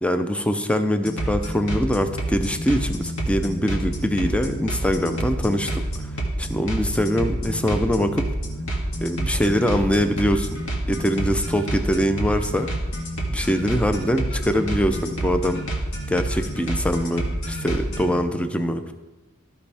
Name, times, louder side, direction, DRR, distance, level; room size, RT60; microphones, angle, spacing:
voice 1, 0.0-5.8 6.4-8.2 9.0-10.6 10.9-12.7 13.3-15.6 16.1-18.9, equal, 5° left, 7 dB, 0.5 m, -23 dB
sound 1, 1.0-18.2, right 1 dB, 65° left, 1.8 m, -28 dB
14.0 x 5.4 x 3.4 m, 1.2 s
head